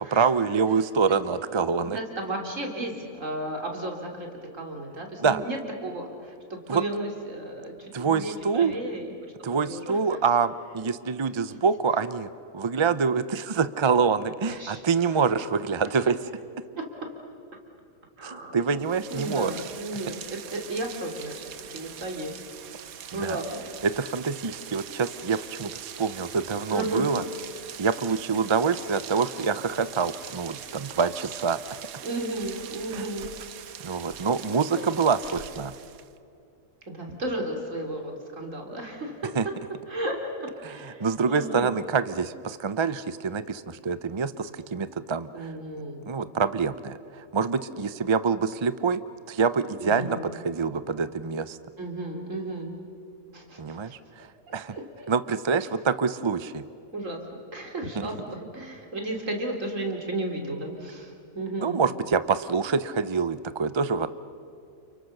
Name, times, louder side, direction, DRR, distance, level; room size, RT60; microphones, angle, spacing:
voice 1, 0.1-2.0 5.2-5.4 6.7-6.8 7.9-8.7 9.4-16.1 18.2-19.5 23.1-23.4 23.8-27.2 27.8-31.6 32.9-33.1 33.8-35.7 39.3-39.4 40.6-45.5 46.1-49.0 49.3-51.6 53.6-54.3 54.5-54.7 55.1-56.6 57.9-58.1 61.6-64.1, right 5 dB, 35° right, 13 dB, 0.4 m, -26 dB
voice 2, 1.9-4.3 4.5-10.2 14.5-14.8 15.1-15.2 17.0-17.1 18.2-18.6 19.1-21.4 21.7-22.3 23.1-23.6 26.7-27.2 32.0-33.3 34.7-35.0 36.9-39.4 39.9-41.8 45.3-46.0 49.8-50.3 51.8-52.8 53.3-54.0 54.5-55.1 56.9-61.8, right 1 dB, 65° right, 1 dB, 3.6 m, -34 dB
Rain, 18.8-36.2, right 9 dB, 85° right, 1.3 m, -42 dB
30.0 x 29.0 x 6.6 m, 2.5 s
omnidirectional pair, 1.5 m